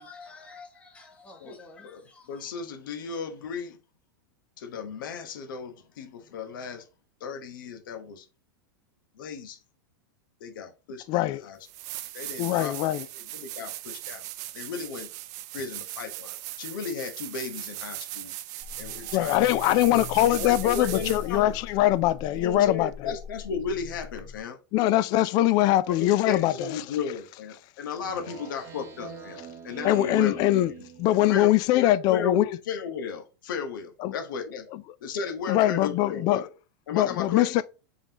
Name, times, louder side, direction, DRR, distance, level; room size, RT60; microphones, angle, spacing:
voice 1, 0.0-2.5, left 3 dB, 10° left, 1.3 m, -49 dB
voice 2, 1.8-3.8 4.6-6.9 7.2-8.3 9.1-9.6 10.4-11.6 12.1-14.2 14.5-15.1 15.5-18.3 18.8-21.6 22.3-24.6 25.9-26.0 26.3-29.4 29.6-30.6 31.3-34.7 35.0-36.5 36.9-37.6, left 6 dB, 75° left, 1.0 m, -35 dB
voice 3, 11.1-11.5 12.4-13.1 19.1-22.9 24.7-26.8 29.8-30.7 31.0-32.6 34.0-34.1 35.5-36.5 36.9-37.6, left 14 dB, 40° left, 0.3 m, -22 dB
sound 1, 11.1-11.2 11.6-21.4 24.2-24.3, right 15 dB, 55° right, 0.4 m, -39 dB
sound 2, 18.6-24.4, left 6 dB, 10° right, 1.6 m, -41 dB
Speech synthesizer, 28.0-31.5, right 8 dB, 25° right, 0.8 m, -42 dB
3.8 x 3.5 x 2.9 m
supercardioid pair, 135°, 11 cm